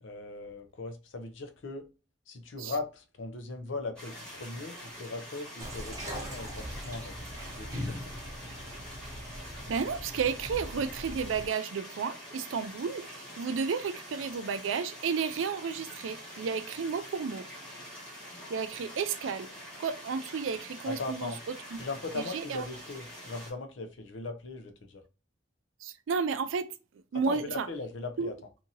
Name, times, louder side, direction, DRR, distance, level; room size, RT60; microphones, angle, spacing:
voice 1, 0.0-1.9 2.3-7.1 7.5-8.0 20.9-21.4 21.8-25.0 27.3-28.3, left 3 dB, 75° left, 0.6 m, -39 dB
sound 1, 4.0-23.5, equal, 5° left, 1.3 m, -46 dB
sound 2, 5.6-11.5, equal, 20° right, 0.7 m, -41 dB
voice 2, 9.7-17.5 18.5-19.5 19.8-21.3 22.1-22.6 25.8-27.7 28.2-28.3, right 5 dB, 90° right, 0.4 m, -32 dB
2.7 x 2.6 x 2.6 m
head